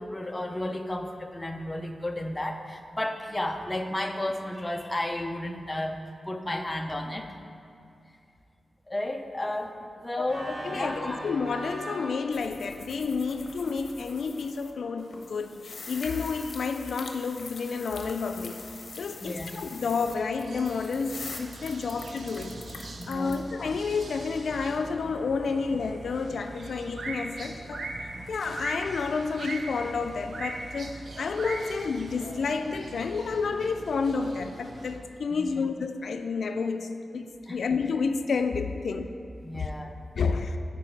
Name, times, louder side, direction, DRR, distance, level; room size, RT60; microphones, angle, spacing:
voice 1, 0.0-7.3 8.9-10.5 10.7-11.2 19.2-19.5 23.0-23.4 28.1-28.3 35.3-35.5 37.5-37.6 39.4-40.0, left 1 dB, 15° left, 5 dB, 0.5 m, -33 dB
Organ, 10.2-15.1, right 1 dB, 50° right, 1.2 m, -42 dB
voice 2, 10.6-18.6 19.0-27.9 28.3-39.1 39.5-39.7 40.2-40.6, left 4 dB, 90° left, 8 dB, 0.3 m, -30 dB
sound 1, 12.3-14.7 15.0-23.4, left 4 dB, 70° left, 0.7 m, -44 dB
sound 2, 18.4-35.0, right 2 dB, 70° right, 0.6 m, -41 dB
9.2 x 4.8 x 4.5 m, 2.5 s
wide cardioid pair, 105°, 0 cm